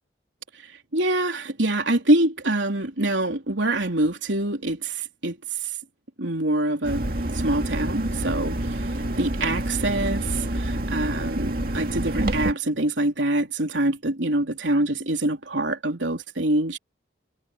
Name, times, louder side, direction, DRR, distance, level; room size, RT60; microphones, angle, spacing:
voice 1, 0.6-5.7 6.2-7.0 7.3-8.9 9.2-16.8, right 1 dB, 80° right, 3.6 m, -25 dB
sound 1, 6.8-12.5, right 1 dB, 50° right, 2.1 m, -27 dB
head